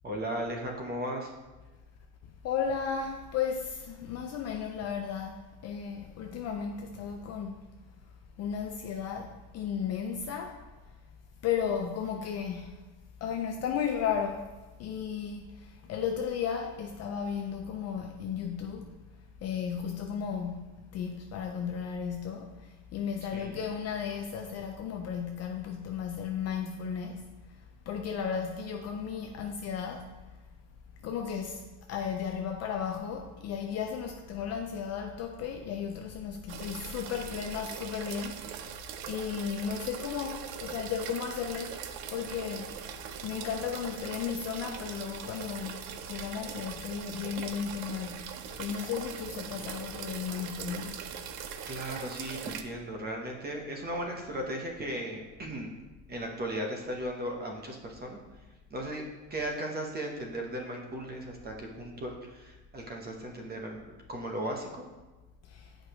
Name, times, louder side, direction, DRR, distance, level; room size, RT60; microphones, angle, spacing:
voice 1, 0.0-1.3 23.3-23.7 51.6-55.7 56.1-58.2 58.7-59.0 59.3-64.8, right 1 dB, 20° right, 1.0 m, -36 dB
voice 2, 2.4-7.6 8.4-10.6 11.4-12.8 13.2-14.5 14.8-18.9 19.4-27.6 27.9-30.1 31.0-31.6 31.9-38.7 39.1-41.8 42.1-42.8 43.2-51.0 65.4-65.7, left 7 dB, 35° left, 0.4 m, -34 dB
sound 1, 36.5-52.6, right 8 dB, 50° right, 0.6 m, -41 dB
8.0 x 5.0 x 3.0 m
cardioid pair, 135°, 45 cm